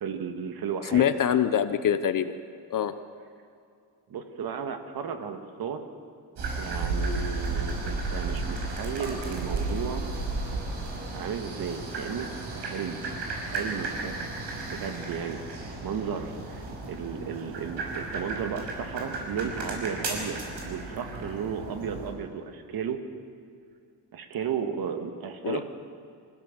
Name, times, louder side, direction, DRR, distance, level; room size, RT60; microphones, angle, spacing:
voice 1, 0.0-1.1 4.1-5.8 6.6-10.2 11.1-13.1 13.4-14.3 14.7-15.4 15.8-23.0 24.1-25.6, right 7 dB, 60° right, 6 dB, 2.0 m, -34 dB
voice 2, 0.9-2.3 2.7-2.9 25.4-25.6, left 9 dB, 50° left, 11 dB, 1.0 m, -24 dB
sound 1, 6.4-22.1, right 3 dB, 85° right, 5.5 m, -34 dB
26.5 x 15.5 x 7.4 m, 2.4 s
cardioid pair, 145°, 41 cm